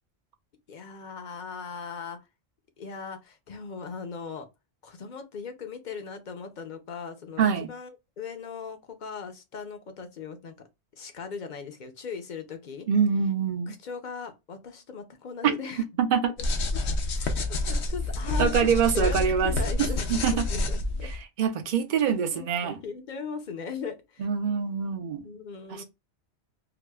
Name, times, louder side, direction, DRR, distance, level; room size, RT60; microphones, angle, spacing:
voice 1, 0.7-2.2 2.8-4.5 4.8-10.5 11.0-12.9 13.7-15.8 16.7-16.8 17.1-18.5 18.9-21.1 22.2-24.3 25.0-25.8, left 5 dB, 50° left, 0.7 m, -39 dB
voice 2, 7.4-7.7 12.9-13.7 15.4-15.6 16.0-16.3 18.4-19.5 20.1-20.5 21.0-22.8 24.2-25.3 25.7-25.8, right 7 dB, 50° right, 0.7 m, -25 dB
sound 1, 16.4-21.2, left 2 dB, 75° left, 1.0 m, -28 dB
4.7 x 2.0 x 2.2 m
omnidirectional pair, 1.2 m